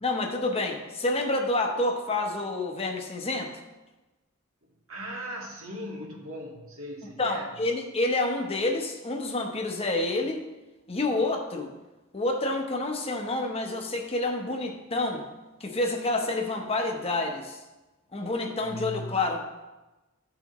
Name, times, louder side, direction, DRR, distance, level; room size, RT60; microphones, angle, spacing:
voice 1, 0.0-3.5 7.2-10.4 10.9-11.7 12.1-15.2 15.6-17.6 18.1-19.4, left 2 dB, 30° left, 2 dB, 0.9 m, -28 dB
voice 2, 4.9-7.5 18.6-19.3, equal, 75° right, -1 dB, 1.8 m, -39 dB
13.0 x 5.9 x 3.1 m, 1.1 s
head